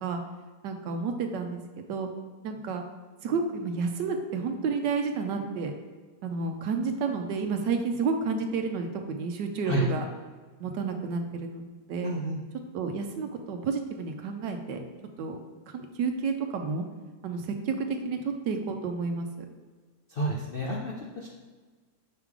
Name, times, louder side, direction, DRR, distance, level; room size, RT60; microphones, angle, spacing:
voice 1, 0.6-2.1 2.4-2.8 3.2-5.7 6.2-10.0 10.6-12.1 12.7-14.8 15.2-15.4 15.7-16.8 17.2-19.3, right 4 dB, 85° right, 5 dB, 1.4 m, -30 dB
voice 2, 12.0-12.4 20.1-21.3, right 1 dB, 65° left, -2 dB, 0.5 m, -30 dB
6.7 x 3.7 x 4.8 m, 1.4 s
omnidirectional pair, 1.8 m